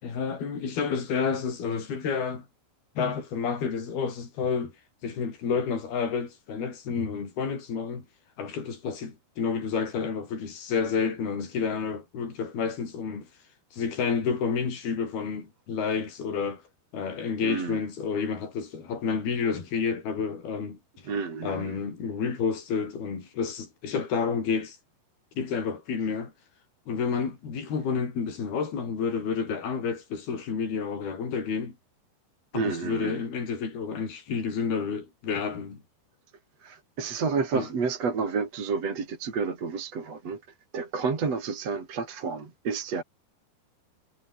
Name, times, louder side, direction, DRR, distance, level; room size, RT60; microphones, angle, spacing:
voice 1, 0.0-2.5 3.0-4.7 5.0-8.1 8.4-13.3 13.7-16.6 16.9-21.1 21.4-24.8 25.4-26.3 26.9-31.8 32.5-35.8 37.5-37.7, left 6 dB, 65° left, 7.3 m, -30 dB
voice 2, 17.4-17.8 21.0-21.7 32.5-33.2 36.6-40.4 40.7-43.0, right 5 dB, 40° right, 4.4 m, -30 dB
omnidirectional pair, 4.7 m